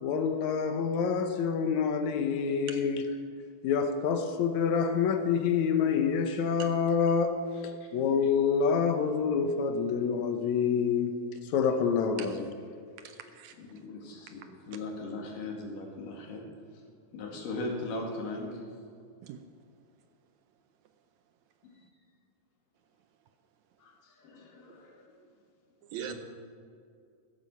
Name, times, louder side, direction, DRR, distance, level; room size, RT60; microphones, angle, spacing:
voice 1, 0.0-3.0 3.6-7.4 7.9-11.2 11.5-12.5, left 6 dB, 70° left, 2.1 m, -27 dB
voice 2, 13.0-13.5 19.2-19.4 25.9-26.1, right 10 dB, 75° right, 1.8 m, -41 dB
voice 3, 13.6-16.4 17.1-18.7 21.6-21.8 23.8-25.2 25.9-26.1, left 2 dB, 85° left, 3.8 m, -39 dB
14.5 x 12.0 x 5.5 m
omnidirectional pair, 3.7 m